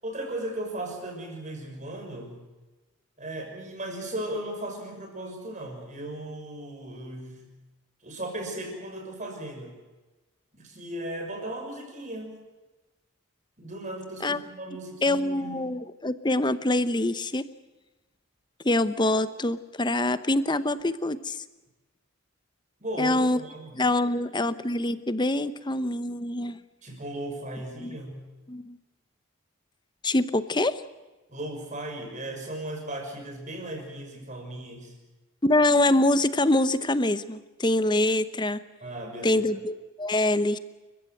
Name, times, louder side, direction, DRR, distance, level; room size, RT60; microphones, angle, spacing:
voice 1, 0.0-2.4 3.2-7.5 8.0-9.8 10.5-12.4 13.6-15.7 22.8-24.1 26.8-28.3 31.3-34.9 38.8-39.5, right 1 dB, 35° right, 2 dB, 6.2 m, -37 dB
voice 2, 15.0-17.4 18.6-21.4 23.0-23.4 23.8-26.6 27.8-27.9 28.5-28.8 30.0-30.8 35.4-38.6 39.2-40.6, left 2 dB, 20° left, 13 dB, 0.9 m, -25 dB
29.5 x 15.0 x 7.9 m, 1.2 s
head